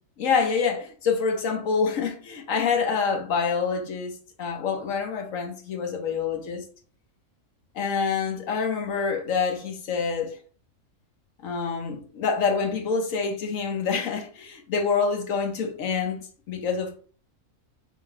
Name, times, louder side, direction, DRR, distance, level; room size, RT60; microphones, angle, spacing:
voice 1, 0.2-6.6 7.7-10.4 11.4-16.2 16.5-17.0, left 5 dB, 70° left, 1.3 m, -26 dB
3.6 x 2.8 x 4.6 m
omnidirectional pair, 1.4 m